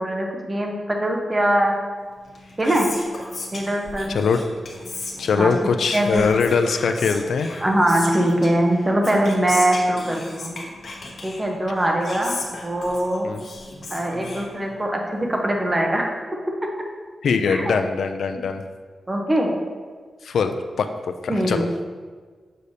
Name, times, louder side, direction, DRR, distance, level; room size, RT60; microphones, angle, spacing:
voice 1, 0.0-1.7 2.6-2.9 3.5-4.2 5.4-5.5 5.9-6.3 7.6-10.5 11.2-12.4 12.6-13.3 13.9-16.1 17.5-17.7 19.1-19.5 21.3-21.6, right 1 dB, 20° right, 1 dB, 0.8 m, -22 dB
Whispering, 2.2-15.0, left 2 dB, 50° left, 1.0 m, -36 dB
voice 2, 4.1-4.4 5.2-7.5 13.2-13.4 17.2-18.6 20.2-20.9 21.2-21.8, left 5 dB, 80° left, 7 dB, 0.3 m, -22 dB
6.6 x 6.4 x 2.7 m, 1.5 s
wide cardioid pair, 150°, 0 cm